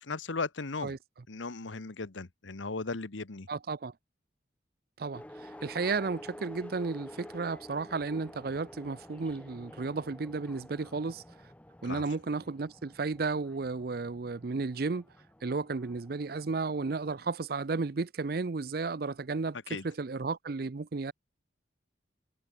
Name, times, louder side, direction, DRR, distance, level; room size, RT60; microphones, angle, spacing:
voice 1, 0.0-0.9 1.3-3.5 11.8-12.0 19.7-19.8, left 3 dB, 90° left, 1.2 m, -36 dB
voice 2, 3.5-3.9 5.0-11.2 11.8-15.0 15.4-21.1, right 4 dB, 55° right, 0.5 m, -33 dB
sound 1, 5.1-17.4, left 1 dB, 5° left, 0.7 m, -50 dB
head